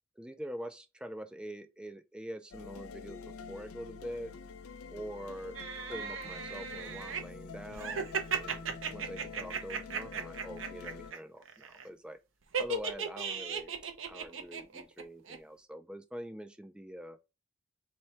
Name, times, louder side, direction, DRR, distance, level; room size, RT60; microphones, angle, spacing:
voice 1, 0.2-4.3 4.9-5.6 5.8-12.2 12.6-17.2, equal, 5° right, 0.3 m, -44 dB
sound 1, 2.5-11.1, left 5 dB, 90° left, 0.5 m, -46 dB
sound 2, 5.5-7.2 7.7-11.2 11.4-11.8 12.5-15.0 15.3-15.4, right 6 dB, 65° right, 0.7 m, -36 dB
4.4 x 2.2 x 4.3 m
head